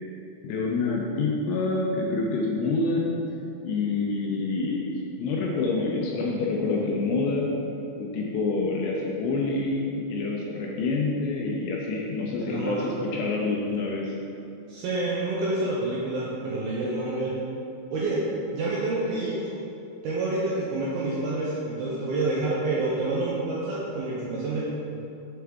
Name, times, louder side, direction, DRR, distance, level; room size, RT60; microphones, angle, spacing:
voice 1, 0.4-3.1 3.6-4.8 5.2-7.5 8.0-14.1, left 3 dB, 80° left, -2 dB, 2.5 m, -27 dB
voice 2, 12.4-13.0 14.7-17.4 17.9-19.5 20.0-24.7, right 2 dB, 80° right, -6 dB, 2.3 m, -28 dB
7.3 x 4.8 x 3.4 m, 2.7 s
omnidirectional pair, 5.2 m